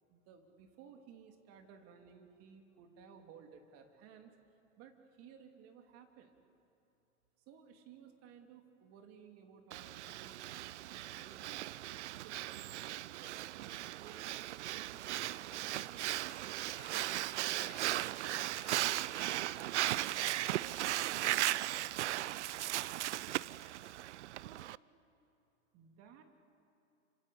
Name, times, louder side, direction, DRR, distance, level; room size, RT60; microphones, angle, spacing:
voice 1, 0.1-4.3 4.8-6.4 7.5-11.8 12.2-14.3 14.7-18.0 18.3-23.6 24.4-24.7 25.7-26.2, right 7 dB, 40° right, 4 dB, 3.0 m, -58 dB
Breathing, 9.7-24.8, right 15 dB, 65° right, 0.5 m, -37 dB
sound 1, 14.7-15.2 15.5-20.1, left 9 dB, 45° left, 3.3 m, -58 dB
27.5 x 25.5 x 8.2 m, 2.7 s
hypercardioid pair, 115°, 38 cm